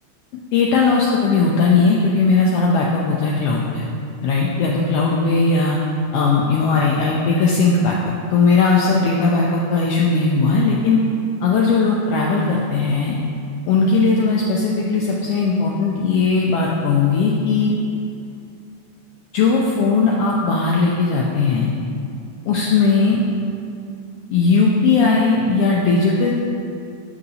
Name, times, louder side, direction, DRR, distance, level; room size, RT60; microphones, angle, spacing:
voice 1, 0.3-3.8 4.2-5.8 6.1-8.0 8.3-11.0 11.4-13.2 13.7-17.7 19.3-21.7 22.5-23.2 24.3-26.3, left 4 dB, 90° left, -3 dB, 1.3 m, -18 dB
7.9 x 5.5 x 4.1 m, 2.6 s
omnidirectional pair, 3.4 m